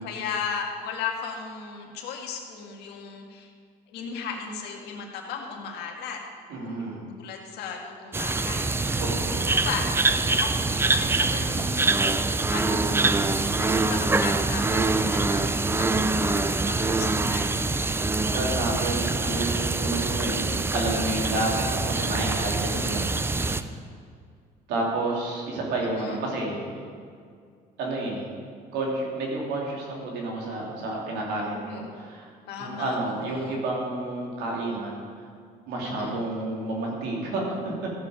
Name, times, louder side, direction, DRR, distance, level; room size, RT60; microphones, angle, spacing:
voice 1, 0.0-3.5 3.9-6.2 6.6-6.9 7.2-8.8 9.5-12.2 12.5-17.5 22.7-23.0 25.8-26.2 31.5-31.9 32.5-33.6 35.8-36.2, left 6 dB, 80° left, 1 dB, 1.8 m, -36 dB
voice 2, 6.5-7.0 9.0-9.4 18.3-23.6 24.7-26.8 27.8-28.2 28.7-32.3 32.6-35.0 35.7-37.9, right 2 dB, 85° right, -2 dB, 3.0 m, -30 dB
sound 1, 8.1-23.6, right 3 dB, 15° right, 0.5 m, -25 dB
14.5 x 7.5 x 5.1 m, 2.1 s
cardioid pair, 110°, 17 cm